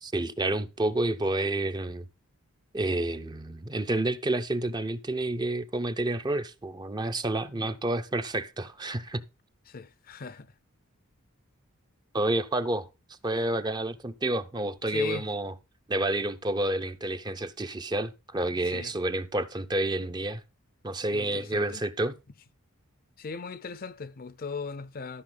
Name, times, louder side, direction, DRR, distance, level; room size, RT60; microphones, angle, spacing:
voice 1, 0.0-2.1 2.7-9.2 12.1-12.9 13.2-15.5 15.9-20.4 20.8-22.1, right 2 dB, 20° right, 0.6 m, -29 dB
voice 2, 9.7-10.5 14.9-15.3 18.7-18.9 21.1-21.8 23.2-25.2, left 5 dB, 40° left, 0.6 m, -38 dB
13.5 x 5.8 x 3.9 m
head